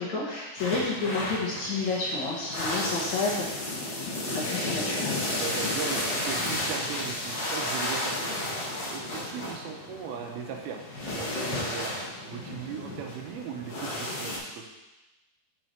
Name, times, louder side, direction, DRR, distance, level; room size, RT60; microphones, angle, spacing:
voice 1, 0.0-3.5 4.2-5.3, left 3 dB, 60° left, -5 dB, 2.2 m, -30 dB
sound 1, 0.6-14.4, left 1 dB, 85° left, 0.9 m, -32 dB
voice 2, 5.3-8.6 8.9-11.9 12.3-14.7, right 7 dB, 85° right, 3 dB, 2.7 m, -38 dB
6.4 x 5.9 x 4.4 m, 1.1 s
omnidirectional pair, 4.3 m